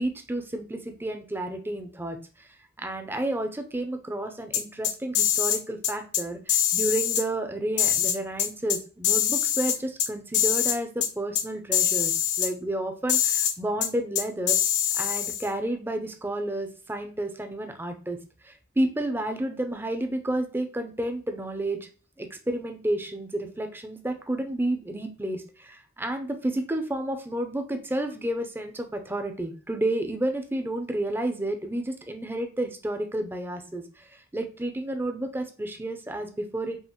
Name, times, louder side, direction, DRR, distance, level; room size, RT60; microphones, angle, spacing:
voice 1, 0.0-2.2 2.8-14.6 14.9-18.2 18.4-21.9 22.2-36.8, right 1 dB, 10° right, 5 dB, 0.5 m, -31 dB
sound 1, 4.5-5.6 5.8-6.2 6.5-7.2 7.8-8.8 9.0-10.1 10.3-10.8 11.0-11.1 11.4-11.5 11.7-12.5 13.1-13.5 13.8-13.9 14.2-15.5, left 9 dB, 75° left, 1.0 m, -24 dB
5.5 x 2.5 x 2.9 m, 0.38 s
head